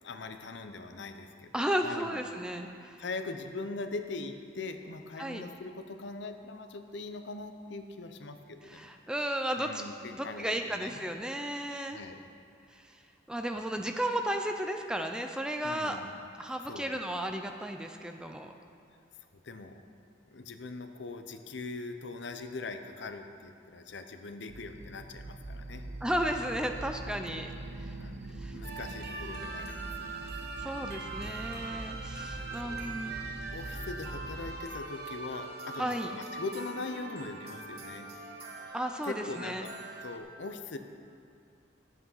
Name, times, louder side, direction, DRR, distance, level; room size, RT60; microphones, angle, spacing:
voice 1, 0.0-2.2 3.0-8.9 9.6-11.0 11.9-12.2 15.6-16.1 16.5-16.9 19.4-19.8 20.3-25.8 27.3-27.7 28.0-30.3 31.2-31.6 32.1-32.9 33.5-38.1 39.0-39.8 40.0-40.8, left 3 dB, 65° left, 7 dB, 0.7 m, -41 dB
voice 2, 1.5-3.0 5.2-5.4 8.7-9.8 10.1-12.0 12.7-13.0 13.3-16.0 16.4-18.5 26.0-27.9 28.4-28.6 30.6-33.1 35.8-36.1 38.7-39.6, right 1 dB, 5° right, 5 dB, 0.4 m, -34 dB
sound 1, 24.5-34.6, right 2 dB, 85° right, 0.7 m, -43 dB
sound 2, 28.6-40.2, right 3 dB, 55° right, 1.0 m, -42 dB
11.0 x 8.2 x 5.6 m, 2.4 s
head